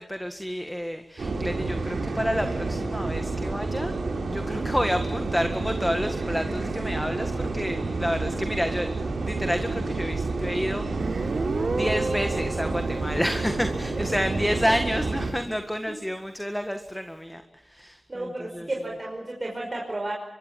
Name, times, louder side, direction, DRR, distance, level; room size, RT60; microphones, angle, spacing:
voice 1, 0.0-3.9 4.3-11.3 11.7-18.7, equal, 5° left, 7 dB, 1.7 m, -29 dB
sound 1, 1.2-15.3, right 3 dB, 80° right, 4.3 m, -29 dB
Guitar, 11.0-14.5, right 3 dB, 60° right, 1.4 m, -32 dB
voice 2, 18.1-20.1, right 1 dB, 35° right, -1 dB, 5.4 m, -32 dB
24.5 x 23.0 x 7.5 m, 0.89 s
cardioid pair, 60°, 0 cm